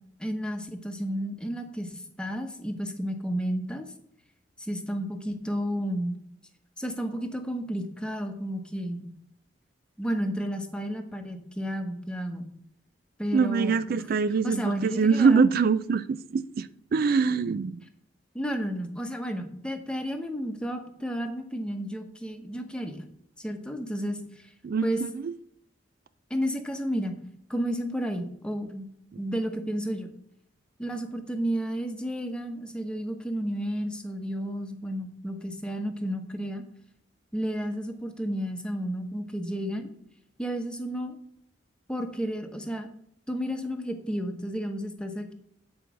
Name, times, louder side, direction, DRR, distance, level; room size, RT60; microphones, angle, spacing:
voice 1, 0.2-1.9 2.2-3.9 4.6-6.2 6.8-9.1 10.0-12.5 13.2-14.0 14.4-15.5 18.3-23.0 23.4-24.5 24.8-25.0 26.3-27.1 27.5-28.9 29.2-30.1 30.8-36.6 37.3-39.9 40.4-41.2 41.9-42.9 43.3-45.3, equal, 5° left, 1.0 m, -32 dB
voice 2, 13.3-17.8 24.6-25.3, right 5 dB, 55° right, 0.3 m, -24 dB
9.1 x 4.7 x 6.1 m
head